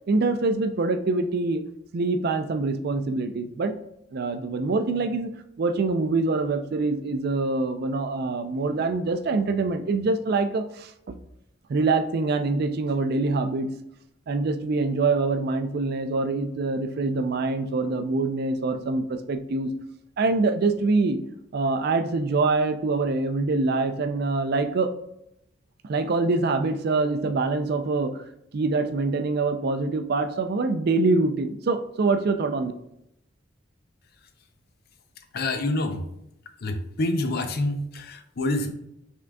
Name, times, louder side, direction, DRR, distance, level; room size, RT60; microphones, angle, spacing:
voice 1, 0.1-1.6 1.9-3.8 4.1-5.3 5.6-11.1 11.7-13.7 14.3-19.7 20.2-21.2 21.5-24.9 25.8-28.2 28.5-32.7, right 3 dB, 55° right, 9 dB, 0.4 m, -25 dB
voice 2, 35.3-36.0 36.6-38.7, left 2 dB, 55° left, 7 dB, 0.5 m, -27 dB
5.9 x 3.7 x 2.2 m, 0.80 s
head